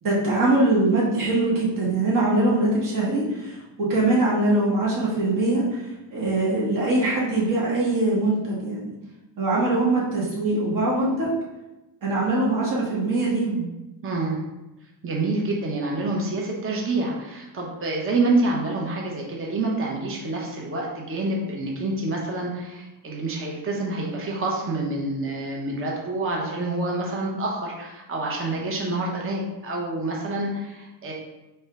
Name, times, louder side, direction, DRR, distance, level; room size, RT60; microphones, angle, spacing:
voice 1, 0.0-8.9 9.4-11.3 12.0-13.7, right 2 dB, 45° right, -5 dB, 1.4 m, -22 dB
voice 2, 14.0-14.4 15.0-31.1, right 2 dB, 30° right, -2 dB, 0.8 m, -27 dB
3.2 x 2.7 x 4.6 m, 1.0 s
cardioid pair, 110°, 44 cm